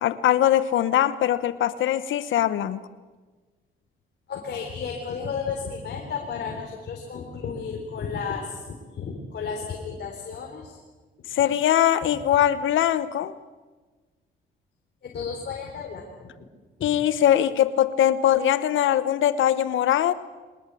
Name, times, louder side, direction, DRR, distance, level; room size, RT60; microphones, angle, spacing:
voice 1, 0.0-2.8 11.3-13.3 16.8-20.1, left 11 dB, 75° left, 14 dB, 1.2 m, -21 dB
voice 2, 4.3-8.6 8.9-10.8 15.0-16.3 16.8-16.9, left 5 dB, 55° left, 1 dB, 4.0 m, -33 dB
23.0 x 20.0 x 8.5 m, 1.3 s
cardioid pair, 90°, 20 cm